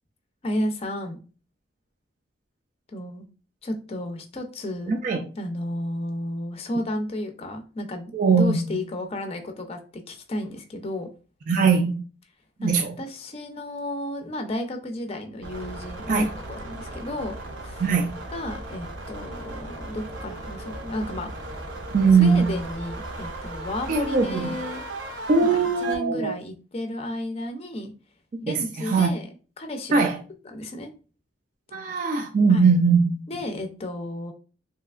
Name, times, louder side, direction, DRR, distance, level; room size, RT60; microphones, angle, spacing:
voice 1, 0.4-1.2 2.9-3.2 3.6-4.9 5.4-11.1 12.6-17.4 17.6-17.8 18.3-21.3 22.1-24.8 25.8-27.9 28.5-29.3 29.6-30.1 30.4-30.9 32.5-32.6 33.3-34.3, left 1 dB, 30° left, 0.4 m, -32 dB
voice 2, 4.9-5.2 8.1-8.6 11.5-12.0 12.6-12.9 16.1-16.3 17.8-18.2 21.9-22.5 23.9-24.5 25.3-26.3 28.5-29.1 29.9-30.2 31.7-33.2, right 5 dB, 45° right, 0.3 m, -20 dB
sound 1, 15.4-25.9, right 2 dB, 80° right, 0.7 m, -36 dB
3.2 x 2.8 x 2.3 m
head